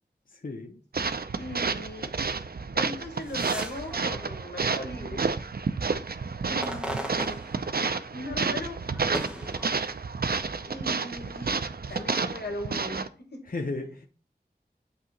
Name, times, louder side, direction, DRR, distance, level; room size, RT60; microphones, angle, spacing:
voice 1, 0.3-0.8 13.4-14.1, left 3 dB, 55° left, 3 dB, 0.7 m, -34 dB
sound 1, 0.9-13.1, right 4 dB, 65° right, 0.5 m, -30 dB
voice 2, 1.4-2.2 2.7-5.3 6.5-7.4 8.1-8.8 10.6-11.6 11.9-13.5, left 1 dB, 85° left, 4 dB, 1.3 m, -38 dB
sound 2, 3.0-5.4 5.9-8.2 8.5-10.4 11.0-12.0, equal, 5° right, 1.2 m, -40 dB
8.3 x 2.9 x 4.0 m, 0.39 s
wide cardioid pair, 50°, 17 cm